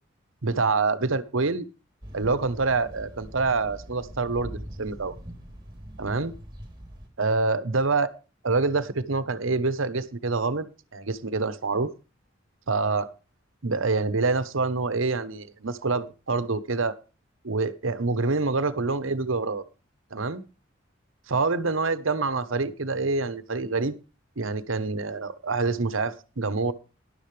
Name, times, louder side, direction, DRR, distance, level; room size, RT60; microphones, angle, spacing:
voice 1, 0.4-1.7 2.1-5.2 6.0-6.3 7.2-8.1 8.4-10.7 10.9-11.9 12.7-13.1 13.6-17.0 17.4-19.6 20.1-20.4 21.3-24.0 24.4-26.7, right 3 dB, 75° right, 14 dB, 1.0 m, -26 dB
sound 1, 2.0-7.1, equal, 20° right, 3.2 m, -42 dB
12.5 x 11.5 x 3.3 m, 0.32 s
head